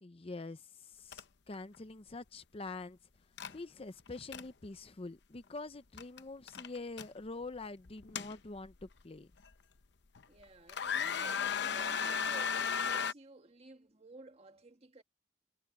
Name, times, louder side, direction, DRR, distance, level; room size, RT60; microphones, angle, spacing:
voice 1, 0.0-3.0 3.5-9.3, left 3 dB, 30° left, 0.6 m, -45 dB
sound 1, 1.1-1.2 1.5-1.8 3.4-3.5 4.1-4.4 6.0-6.2 6.5-7.1 7.9-8.8 9.4-9.5 10.2-10.4 10.7-13.1, left 7 dB, 65° left, 0.8 m, -35 dB
voice 2, 10.3-15.0, right 2 dB, 35° right, 2.0 m, -54 dB
head